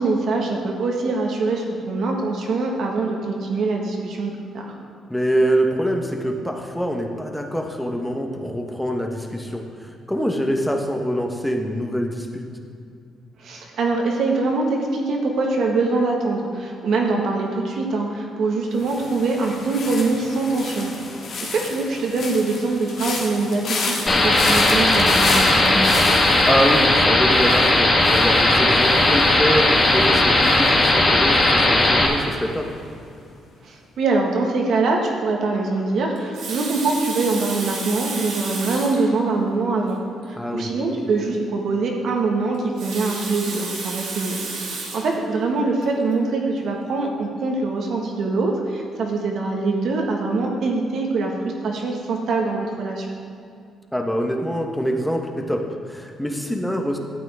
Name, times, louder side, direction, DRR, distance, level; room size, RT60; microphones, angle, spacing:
voice 1, 0.0-4.7 13.4-20.9 21.4-25.8 33.6-40.0 40.3-44.4 44.9-51.3 51.6-53.1, right 3 dB, 70° right, 0 dB, 1.7 m, -23 dB
voice 2, 5.1-12.4 26.5-32.7 40.4-40.7 53.9-57.0, equal, 5° left, 2 dB, 1.2 m, -25 dB
sound 1, 18.8-31.8 32.1-32.5, left 3 dB, 70° left, 1.8 m, -32 dB
sound 2, 24.1-32.1, left 2 dB, 35° left, 1.7 m, -17 dB
Water tap faucet, 36.1-39.1 39.8-40.0 40.2-40.3 42.5-45.1 45.8-46.0, right 3 dB, 90° right, 2.1 m, -32 dB
12.5 x 8.5 x 3.7 m, 2.5 s
cardioid pair, 90°, 0 cm